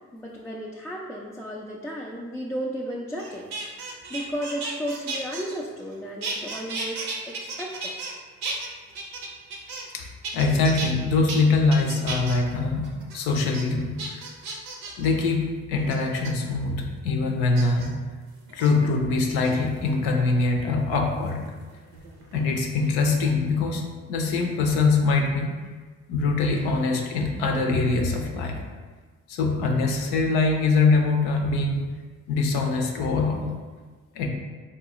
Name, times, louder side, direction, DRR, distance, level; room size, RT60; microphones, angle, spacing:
voice 1, 0.1-3.5 3.8-8.0, equal, 5° left, -4 dB, 0.3 m, -34 dB
sound 1, 3.2-5.9 6.2-8.1 8.4-10.0 10.2-10.9 11.3-11.4 11.7-12.4 12.8-13.2 13.5-13.6 14.0-15.1 15.9-16.3 17.5-17.9 18.5-18.7 19.3-19.9 21.3-22.5 22.7-23.1, right 3 dB, 80° right, 0.6 m, -34 dB
voice 2, 10.3-14.2 15.0-18.0 18.5-21.4 22.3-25.5 26.1-28.6 29.3-31.8 32.3-33.5 34.1-34.3, left 3 dB, 70° left, 2 dB, 0.6 m, -23 dB
3.8 x 2.2 x 2.9 m, 1.4 s
hypercardioid pair, 40°, 39 cm